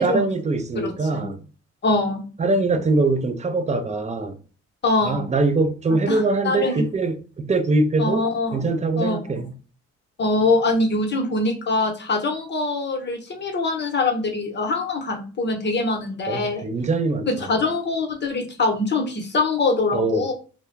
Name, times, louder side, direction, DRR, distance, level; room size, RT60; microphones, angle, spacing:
voice 1, 0.0-1.4 2.4-4.4 5.0-8.3 8.5-9.5 16.3-17.3 19.9-20.3, right 3 dB, 25° right, 0.4 m, -22 dB
voice 2, 1.8-2.2 4.8-5.3 6.1-6.8 8.0-8.7 9.0-9.4 10.2-16.6 17.4-20.3, left 3 dB, 35° left, 0.8 m, -23 dB
2.3 x 2.1 x 3.0 m
cardioid pair, 90°, 30 cm